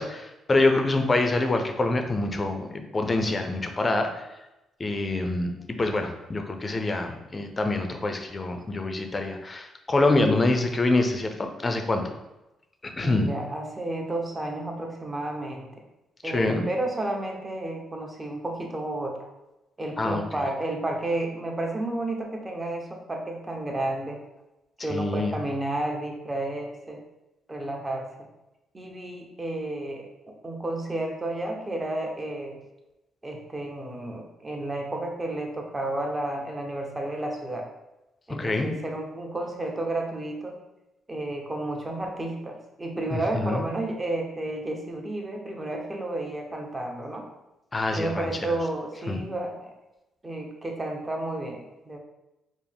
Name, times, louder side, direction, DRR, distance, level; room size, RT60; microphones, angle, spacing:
voice 1, 0.0-4.3 4.8-5.5 5.8-12.0 12.8-13.3 16.2-16.7 20.0-20.2 24.9-25.4 38.3-38.7 43.1-43.6 47.7-48.6 49.1-49.2, left 2 dB, 30° left, 5 dB, 0.5 m, -26 dB
voice 2, 13.0-15.7 16.2-19.3 19.8-24.2 24.8-27.0 27.5-28.1 28.7-32.6 33.2-37.7 38.3-40.6 41.1-47.2 47.9-49.7 50.2-52.0, right 2 dB, 20° right, 2 dB, 0.7 m, -31 dB
4.8 x 2.1 x 3.5 m, 0.97 s
cardioid pair, 90°, 0 cm